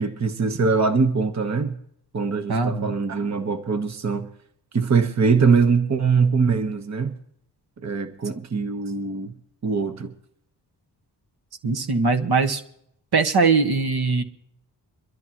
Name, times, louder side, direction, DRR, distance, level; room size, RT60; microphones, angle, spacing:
voice 1, 0.0-1.8 2.1-4.3 4.7-7.1 7.8-9.3 9.6-10.1, right 5 dB, 40° right, 1.1 m, -22 dB
voice 2, 2.5-2.9 11.6-12.6 13.1-14.2, right 4 dB, 60° right, 1.5 m, -21 dB
24.0 x 13.5 x 3.0 m
cardioid pair, 85°, 42 cm